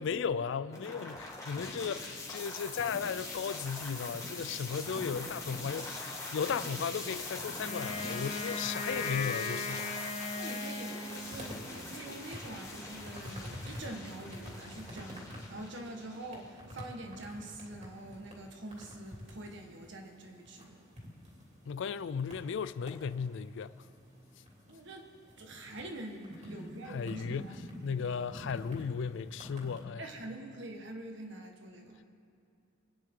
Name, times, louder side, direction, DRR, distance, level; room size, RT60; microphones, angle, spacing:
voice 1, 0.0-9.9 10.1-10.2 21.7-23.7 26.9-27.5 27.8-30.0, left 6 dB, 70° left, 0.4 m, -35 dB
sound 1, 0.7-16.7, left 2 dB, 15° left, 1.9 m, -42 dB
Wind instrument woodwind instrument, 7.6-11.8, left 3 dB, 30° left, 0.8 m, -38 dB
voice 2, 10.4-20.9 24.7-25.1 25.4-27.7 28.0-28.2 30.0-32.0, right 1 dB, 65° right, 1.6 m, -45 dB
sound 2, 11.0-29.8, equal, 40° right, 2.7 m, -49 dB
24.5 x 9.5 x 3.8 m
head